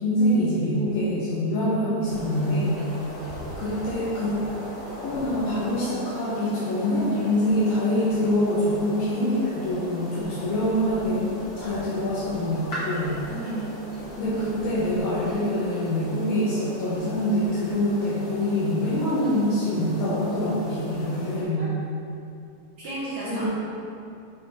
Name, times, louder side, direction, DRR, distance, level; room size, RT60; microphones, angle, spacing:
voice 1, 0.0-2.8 3.6-4.4 5.0-13.2 14.2-21.7 23.2-23.5, left 1 dB, 70° left, -10 dB, 2.9 m, -25 dB
sound 1, 2.0-21.4, equal, 40° left, 1.3 m, -38 dB
voice 2, 13.3-13.7 21.6-21.7 22.8-23.5, right 2 dB, 70° right, -8 dB, 1.7 m, -33 dB
10.0 x 4.1 x 4.3 m, 2.6 s
omnidirectional pair, 4.4 m